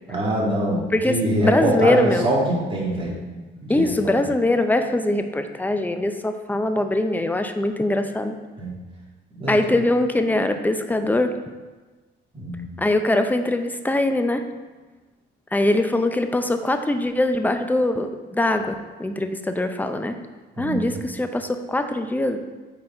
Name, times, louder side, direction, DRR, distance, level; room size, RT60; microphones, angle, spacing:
voice 1, 0.1-3.1 3.7-3.9 8.6-8.8 9.3-9.6 12.3-12.7 20.6-21.0, right 1 dB, 25° right, -4 dB, 2.3 m, -23 dB
voice 2, 0.9-2.3 3.7-8.4 9.5-11.4 12.8-14.4 15.5-20.1 20.6-22.4, left 1 dB, 10° left, 7 dB, 0.6 m, -22 dB
8.5 x 4.1 x 4.3 m, 1.3 s
cardioid pair, 90°, 20 cm